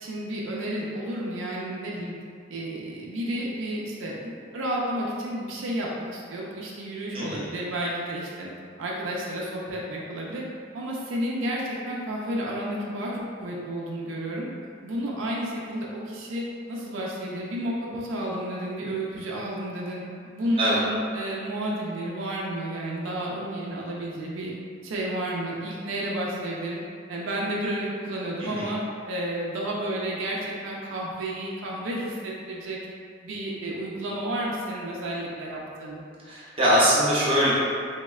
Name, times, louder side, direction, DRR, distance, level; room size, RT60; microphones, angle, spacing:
voice 1, 0.0-2.1 2.5-8.5 8.8-10.4 10.7-14.5 14.8-20.0 20.3-24.5 24.8-26.8 27.1-28.8 29.1-32.8 33.2-36.0, right 1 dB, 90° right, -4 dB, 0.4 m, -31 dB
voice 2, 36.3-37.5, equal, 30° right, -8 dB, 0.7 m, -22 dB
3.5 x 2.0 x 2.3 m, 2.2 s
head